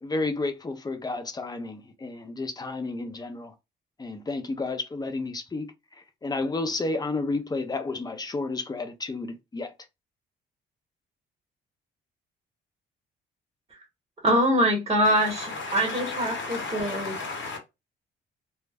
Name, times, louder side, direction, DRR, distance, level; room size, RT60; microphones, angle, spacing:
voice 1, 0.0-3.5 4.0-9.7, left 3 dB, 20° left, 0.5 m, -31 dB
voice 2, 14.2-17.1, equal, 25° right, 0.9 m, -24 dB
voice 3, 15.3-17.6, left 3 dB, 75° left, 1.0 m, -34 dB
2.1 x 2.0 x 3.3 m
cardioid pair, 90°, 20 cm